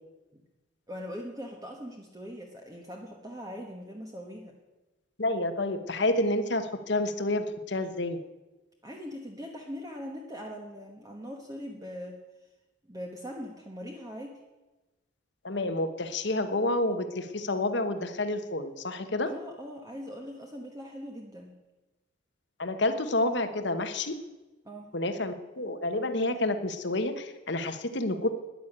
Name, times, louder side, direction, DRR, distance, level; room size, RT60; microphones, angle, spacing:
voice 1, 0.9-4.5 8.8-12.2 12.9-14.4 19.2-21.6 24.6-24.9, equal, 15° right, 1 dB, 1.2 m, -41 dB
voice 2, 5.2-8.2 15.4-19.3 22.6-24.1 24.9-28.3, left 2 dB, 55° left, 9 dB, 1.1 m, -29 dB
11.0 x 10.5 x 8.7 m, 1.1 s
head